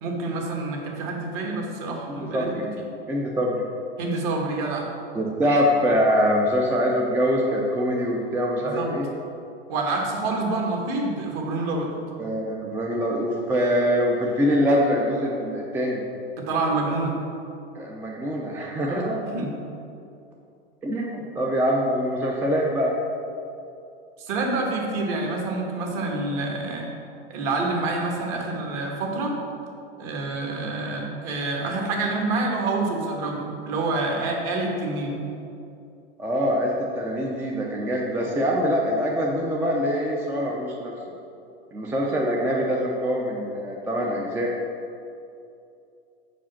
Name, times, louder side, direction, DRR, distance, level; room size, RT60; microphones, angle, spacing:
voice 1, 0.0-2.9 4.0-4.9 8.6-8.9 9.7-11.9 16.4-17.2 18.8-19.0 19.3-19.5 24.2-26.9 27.3-29.4 30.0-35.2, right 2 dB, 45° right, 0 dB, 1.4 m, -27 dB
voice 2, 2.1-2.7 3.1-3.6 5.1-9.1 12.2-16.0 17.7-19.2 20.8-22.9 36.2-40.9 41.7-44.5, equal, 5° right, -2 dB, 0.4 m, -24 dB
5.0 x 4.9 x 5.7 m, 2.6 s
hypercardioid pair, 125°, 31 cm